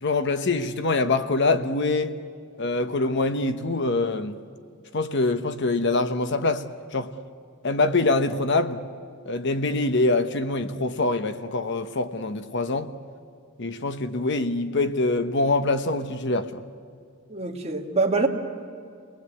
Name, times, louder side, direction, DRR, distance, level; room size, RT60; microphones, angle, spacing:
voice 1, 0.0-2.2 2.6-4.4 4.9-6.6 6.9-7.1 7.6-8.8 9.3-12.9 13.6-16.6, left 2 dB, 55° left, 1.0 m, -24 dB
voice 2, 17.3-18.3, right 3 dB, 30° right, 2.2 m, -24 dB
30.0 x 19.5 x 8.4 m
head